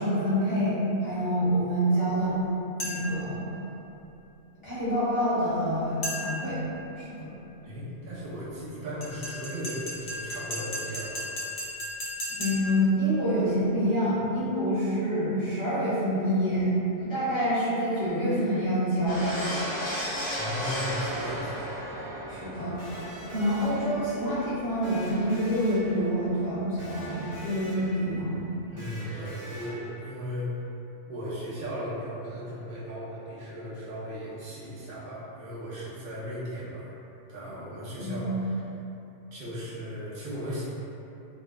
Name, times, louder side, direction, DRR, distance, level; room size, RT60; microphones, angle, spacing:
voice 1, 0.0-2.4 2.8-3.4 4.6-6.6 7.0-7.3 12.4-16.7 17.0-19.3 22.3-22.8 23.3-28.4 38.0-38.3, equal, 25° left, -13 dB, 1.1 m, -27 dB
sound 1, 2.8-3.2 6.0-6.5 9.0-12.8, left 1 dB, 65° left, 0.8 m, -35 dB
voice 2, 7.6-11.3 20.3-21.7 28.7-30.5 31.1-36.9 37.3-38.6 39.3-40.7, equal, 55° right, -9 dB, 0.8 m, -36 dB
sound 2, 19.1-28.1 28.4-28.6, equal, 50° left, 1.0 m, -36 dB
Electric guitar, 22.8-30.5, equal, 25° right, 0.3 m, -45 dB
2.6 x 2.2 x 2.2 m, 2.9 s
omnidirectional pair, 1.2 m